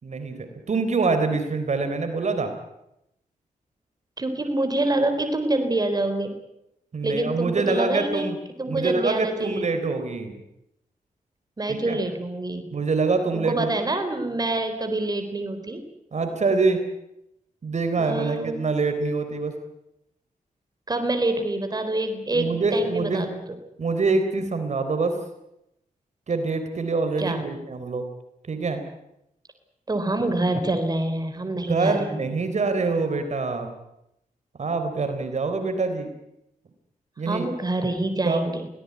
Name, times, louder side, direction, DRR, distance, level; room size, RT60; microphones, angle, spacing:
voice 1, 0.0-2.5 6.9-8.4 8.7-10.4 11.7-12.0 12.7-13.9 16.1-16.9 17.6-19.5 22.3-23.3 23.8-25.2 26.3-28.1 28.5-28.8 31.7-33.7 34.6-36.1 37.2-37.5 38.2-38.5, right 3 dB, 55° right, 8 dB, 3.8 m, -25 dB
voice 2, 4.2-6.4 7.0-8.3 8.6-9.7 11.6-12.7 13.3-15.8 18.0-18.7 20.9-23.4 27.2-27.4 29.9-32.2 37.3-38.7, right 2 dB, 30° right, 7 dB, 4.0 m, -26 dB
23.5 x 18.0 x 9.6 m, 0.83 s
cardioid pair, 90°, 14 cm